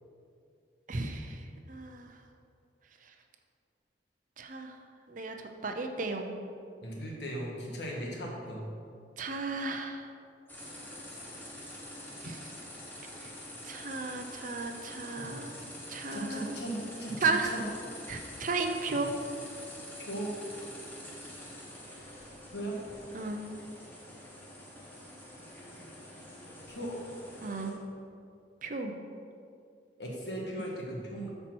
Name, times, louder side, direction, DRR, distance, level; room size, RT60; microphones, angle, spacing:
voice 1, 0.9-1.4 1.7-2.1 4.4-4.7 5.1-5.4 5.6-6.3 9.2-10.0 12.2-12.5 13.2-13.3 13.6-15.5 15.9-16.5 17.2-17.6 18.1-19.1 23.1-23.5 27.4-27.8 28.6-28.9, right 3 dB, 50° right, 5 dB, 0.7 m, -34 dB
voice 2, 6.8-8.6 11.1-11.2 11.6-11.8 16.1-17.7 18.3-18.4 20.0-20.3 22.5-22.8 26.7-27.0 30.0-31.3, right 1 dB, 75° left, -2 dB, 1.7 m, -38 dB
sound 1, 10.5-27.7, left 1 dB, 10° left, 1.3 m, -46 dB
sound 2, 15.2-15.9 16.8-17.8 18.4-18.5 18.9-19.9, equal, 35° left, 1.6 m, -49 dB
8.5 x 4.4 x 6.1 m, 2.4 s
head